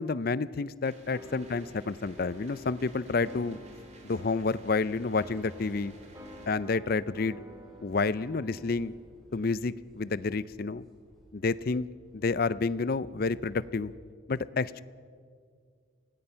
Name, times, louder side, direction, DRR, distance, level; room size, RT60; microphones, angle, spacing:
voice 1, 0.0-3.6 4.0-6.0 6.5-7.4 7.8-8.9 9.3-10.8 11.3-11.9 12.1-13.9 14.3-14.8, left 4 dB, 45° left, 17 dB, 0.5 m, -29 dB
sound 1, 0.8-6.5, right 2 dB, 35° right, 2.6 m, -56 dB
sound 2, 1.1-8.9, equal, 15° right, 2.5 m, -50 dB
sound 3, 1.3-13.9, equal, ahead, 5.7 m, -58 dB
25.5 x 18.0 x 5.7 m, 2.1 s
head